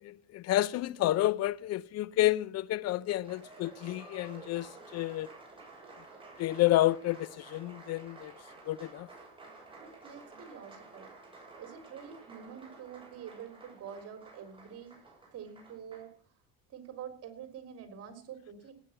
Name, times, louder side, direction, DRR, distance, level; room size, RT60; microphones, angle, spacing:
voice 1, 0.0-5.3 6.4-8.4 8.6-9.1, left 15 dB, 60° left, 0.6 m, -30 dB
Applause, 2.9-16.1, right 3 dB, 20° right, 7.6 m, -52 dB
voice 2, 9.8-11.1 11.6-15.0 15.3-16.1 16.7-18.7, right 8 dB, 55° right, 4.1 m, -46 dB
18.0 x 9.3 x 5.8 m
cardioid pair, 105°, 29 cm